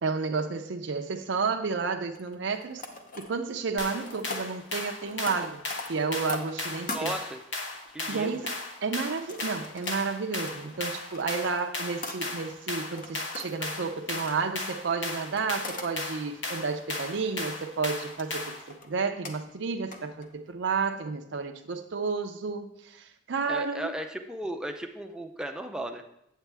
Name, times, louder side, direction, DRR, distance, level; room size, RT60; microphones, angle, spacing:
voice 1, 0.0-2.8 3.2-5.6 5.9-7.1 8.1-23.9, right 4 dB, 60° right, 5 dB, 0.5 m, -31 dB
sound 1, 2.1-3.6 3.8-7.1 7.7-8.5 9.1-12.5 12.9-14.3 15.1-15.9 16.3-16.9 17.4-17.8 18.1-18.9 19.2-19.3 19.9-20.4 20.7-20.8, left 3 dB, 40° left, 0.8 m, -42 dB
sound 2, 3.8-18.7, left 2 dB, 65° left, 1.2 m, -36 dB
voice 2, 6.9-7.4 7.9-8.4 23.5-26.0, right 1 dB, 5° right, 4 dB, 0.5 m, -35 dB
8.3 x 8.1 x 3.4 m, 0.80 s
head